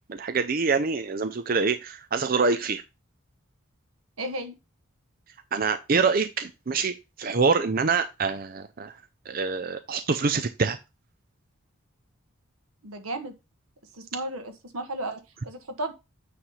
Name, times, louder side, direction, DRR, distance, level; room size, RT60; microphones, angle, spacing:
voice 1, 0.1-2.8 5.5-9.0 9.3-10.8, right 4 dB, 40° right, 0.5 m, -25 dB
voice 2, 4.2-4.5 12.8-13.3 13.9-15.9, right 1 dB, 85° right, 1.4 m, -34 dB
8.9 x 3.2 x 5.6 m
head